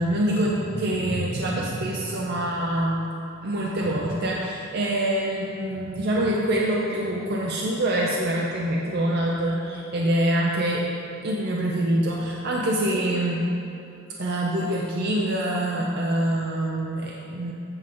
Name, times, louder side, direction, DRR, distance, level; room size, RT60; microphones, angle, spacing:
voice 1, 0.0-3.1 3.4-10.9 11.2-13.5 14.2-17.5, right 1 dB, 50° right, -2 dB, 0.6 m, -25 dB
7.9 x 7.5 x 3.8 m, 2.8 s
head